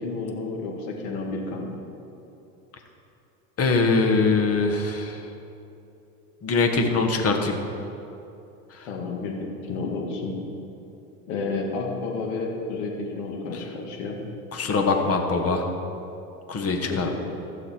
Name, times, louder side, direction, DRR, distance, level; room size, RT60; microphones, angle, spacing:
voice 1, 0.0-1.8 8.9-10.4 11.3-14.2 16.9-17.1, left 3 dB, 65° left, 1 dB, 2.2 m, -31 dB
voice 2, 3.6-5.2 6.4-7.6 8.7-8.9 14.5-15.7 16.5-17.1, left 3 dB, 30° left, 4 dB, 1.4 m, -22 dB
15.0 x 6.6 x 4.5 m, 2.8 s
hypercardioid pair, 100°, 45 cm